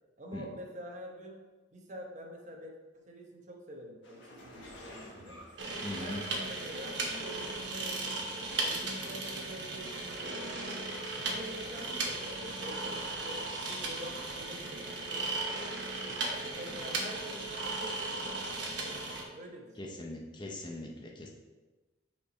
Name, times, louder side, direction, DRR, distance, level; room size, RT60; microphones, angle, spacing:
voice 1, 0.2-1.4 1.7-5.4 6.0-10.4 11.1-13.4 13.7-15.5 16.0-20.5, equal, 40° right, 1 dB, 0.9 m, -47 dB
sound 1, 4.0-6.6 7.4-7.6 8.4-8.5 8.8-9.1 9.7-11.1 11.5-12.0 12.3-12.4 13.6-13.7, left 1 dB, 75° left, 1.4 m, -52 dB
sound 2, 5.6-19.2, right 2 dB, 75° right, 1.0 m, -36 dB
voice 2, 5.8-6.2 19.8-21.3, left 2 dB, 25° left, 0 dB, 0.6 m, -40 dB
5.7 x 4.4 x 4.3 m, 1.2 s
head